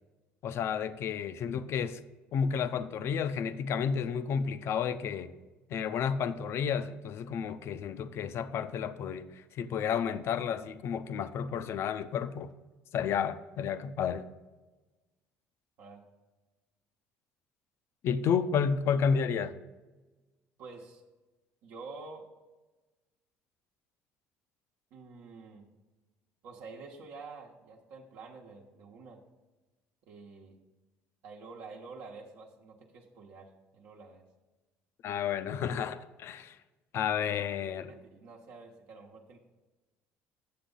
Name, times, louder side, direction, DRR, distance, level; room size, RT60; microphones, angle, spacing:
voice 1, 0.4-2.0 2.3-5.3 5.7-12.5 12.9-14.3 18.0-19.6 35.0-36.6 36.9-37.9, left 7 dB, 60° left, 13 dB, 0.5 m, -31 dB
voice 2, 20.6-21.0 21.6-22.3 24.9-25.6 26.4-29.2 30.0-30.6 31.2-34.2 37.9-39.4, right 4 dB, 75° right, -2 dB, 0.9 m, -48 dB
8.6 x 6.9 x 3.8 m, 1.2 s
supercardioid pair, 90°, 5 cm